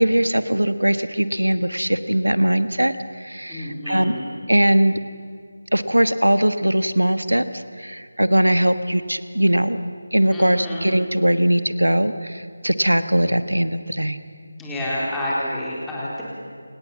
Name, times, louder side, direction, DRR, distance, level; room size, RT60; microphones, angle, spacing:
voice 1, 0.0-2.9 3.2-4.1 4.5-5.0 5.7-7.4 7.8-9.8 10.1-14.2, right 1 dB, 85° right, 11 dB, 1.4 m, -20 dB
voice 2, 3.5-4.3 10.3-10.8 14.6-16.2, left 1 dB, 5° left, -8 dB, 4.1 m, -28 dB
28.0 x 18.0 x 7.4 m, 2.1 s
figure-of-eight pair, 160°, 0 cm